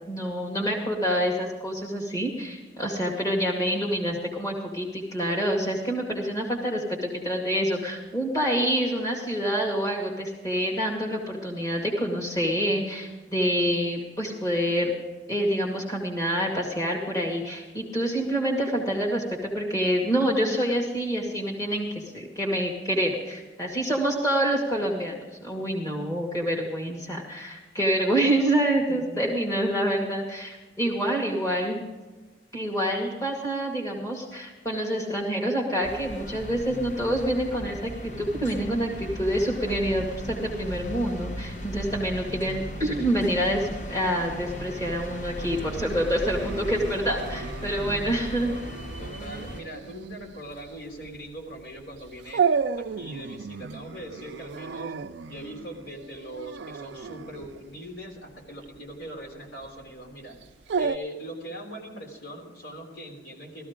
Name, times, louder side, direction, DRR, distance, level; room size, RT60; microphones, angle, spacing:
voice 1, 0.1-14.9 15.3-31.8 32.5-48.5, equal, 20° left, -1 dB, 2.1 m, -27 dB
sound 1, 35.8-49.6, equal, 40° left, 1.1 m, -37 dB
Dog, 45.4-61.0, right 6 dB, 70° right, 0.4 m, -33 dB
voice 2, 49.0-52.4 52.8-55.0 55.2-60.4 60.8-63.7, equal, 65° left, 1 dB, 3.4 m, -41 dB
16.0 x 14.0 x 3.7 m, 1.2 s
head